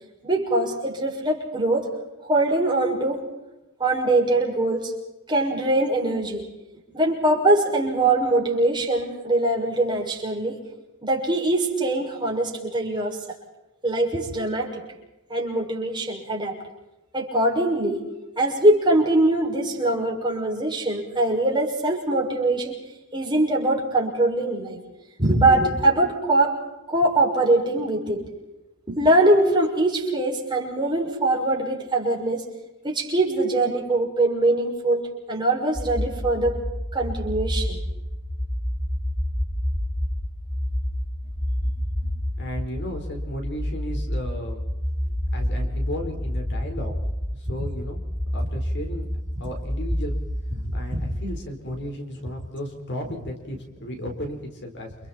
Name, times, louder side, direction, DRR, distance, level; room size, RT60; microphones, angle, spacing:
voice 1, 0.2-1.9 2.2-3.2 3.8-4.9 5.3-6.4 6.9-10.6 11.0-13.2 13.8-14.7 15.3-16.6 17.1-18.0 18.4-22.7 23.1-24.8 25.2-26.6 26.9-28.2 28.9-32.4 32.8-35.0 35.3-36.6 36.9-37.8 50.9-51.0, right 2 dB, 20° right, -2 dB, 6.4 m, -22 dB
sound 1, 35.7-51.7, equal, 10° left, 2.8 m, -29 dB
voice 2, 42.4-44.6 45.3-46.9 47.4-48.0 48.3-49.1 49.4-50.1 50.7-54.9, left 1 dB, 55° left, 3 dB, 4.7 m, -34 dB
30.0 x 28.5 x 4.5 m, 1.0 s
head